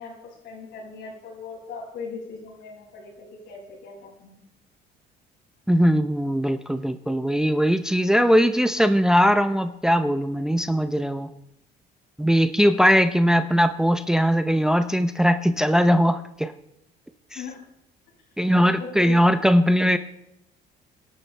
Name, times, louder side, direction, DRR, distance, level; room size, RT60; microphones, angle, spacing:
voice 1, 0.0-4.4 17.3-17.6 18.8-19.2, left 4 dB, 75° left, -1 dB, 6.5 m, -39 dB
voice 2, 5.7-11.3 12.2-16.5 17.3-17.4 18.4-20.0, equal, 5° right, 9 dB, 0.6 m, -20 dB
28.0 x 12.0 x 3.3 m, 0.81 s
cardioid pair, 115°, 18 cm